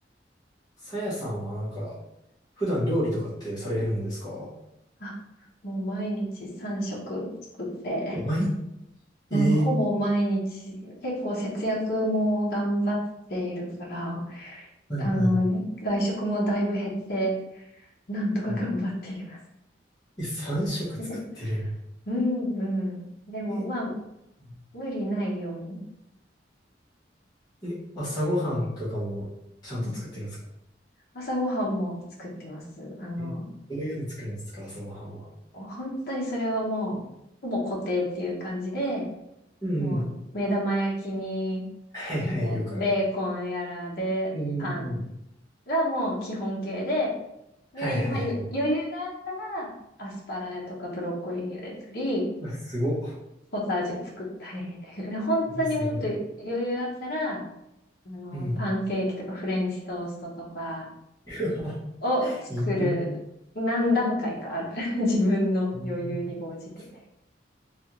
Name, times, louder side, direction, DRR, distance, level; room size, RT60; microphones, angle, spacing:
voice 1, 0.8-1.9 2.6-4.5 8.1-8.5 9.3-9.7 14.9-15.4 18.5-18.6 20.2-21.0 21.3-21.7 23.5-23.6 24.4-24.5 27.6-29.3 29.6-30.4 33.2-33.3 33.7-35.3 39.6-40.0 41.9-42.8 44.3-45.0 47.7-48.4 52.4-53.2 55.5-56.1 58.3-58.7 61.2-61.8 62.2-63.0 65.7-66.1, equal, 20° left, -11 dB, 1.0 m, -30 dB
voice 2, 5.6-7.3 7.8-8.2 9.3-13.0 13.3-14.7 15.0-17.6 18.1-19.4 21.1-21.6 22.1-23.9 24.7-25.8 28.0-28.2 29.8-29.9 31.1-33.5 35.5-37.0 37.4-39.1 39.8-40.0 40.3-41.6 42.2-44.3 44.6-44.9 45.7-47.1 47.7-49.7 50.0-52.3 53.5-57.4 58.0-60.9 62.0-62.3 62.6-63.1 63.5-66.6, equal, 55° left, -3 dB, 0.8 m, -29 dB
3.3 x 2.4 x 2.9 m, 0.84 s
head